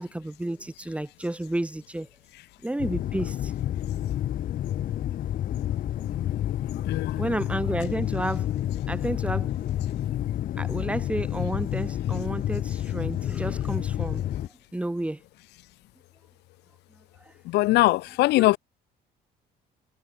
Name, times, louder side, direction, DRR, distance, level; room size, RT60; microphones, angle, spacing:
voice 1, 0.0-2.1 2.6-3.5 7.2-8.5 8.9-9.5 10.6-14.2 14.7-15.2, right 1 dB, 5° right, 2.5 m, -31 dB
sound 1, 2.8-14.5, left 12 dB, 55° left, 1.0 m, -29 dB
voice 2, 6.9-7.2 17.5-18.6, left 19 dB, 80° left, 0.8 m, -21 dB
cardioid pair, 110°, 17 cm